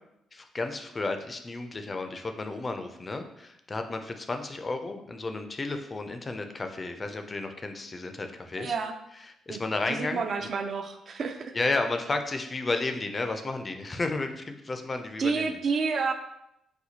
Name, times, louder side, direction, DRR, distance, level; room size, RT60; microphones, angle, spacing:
voice 1, 0.3-8.7 9.5-10.5 11.5-15.5, left 3 dB, 30° left, 6 dB, 0.3 m, -32 dB
voice 2, 8.6-9.0 9.5-9.6 9.9-11.6 15.2-16.1, right 5 dB, 50° right, 7 dB, 0.3 m, -29 dB
4.2 x 2.3 x 2.7 m, 0.81 s
cardioid pair, 90°, 0 cm